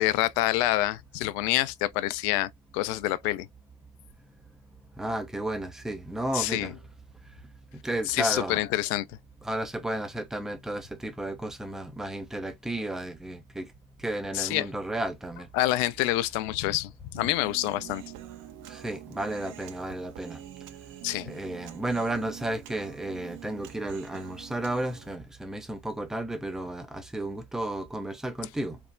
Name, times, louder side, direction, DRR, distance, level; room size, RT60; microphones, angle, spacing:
voice 1, 0.0-3.5 6.3-6.7 8.1-9.1 14.3-14.7 15.5-18.0 21.0-21.3, left 16 dB, 60° left, 0.5 m, -27 dB
voice 2, 5.0-6.8 7.3-7.5 7.8-8.6 9.4-13.7 14.0-15.5 18.7-20.4 21.2-28.8, right 1 dB, ahead, 0.3 m, -33 dB
Human voice, 17.2-25.2, right 12 dB, 45° right, 0.6 m, -45 dB
3.3 x 2.0 x 2.4 m
hypercardioid pair, 75°, 42 cm